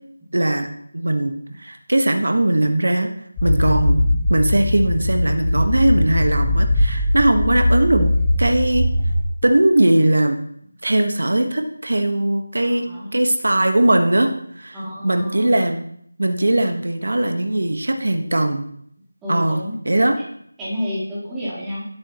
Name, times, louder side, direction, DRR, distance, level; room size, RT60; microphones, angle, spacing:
voice 1, 0.3-3.1 3.4-4.0 4.3-8.9 9.4-10.4 10.8-12.9 13.1-14.8 15.0-15.9 16.2-18.6 19.3-19.6 19.8-20.2, right 1 dB, 70° right, 5 dB, 1.3 m, -19 dB
sound 1, 3.4-9.2, left 1 dB, 10° left, 1.5 m, -20 dB
voice 2, 12.6-13.2 14.7-15.5 19.2-19.7 20.6-21.9, equal, 5° right, -10 dB, 2.5 m, -30 dB
17.0 x 8.4 x 3.0 m, 0.68 s
figure-of-eight pair, 170°, 0 cm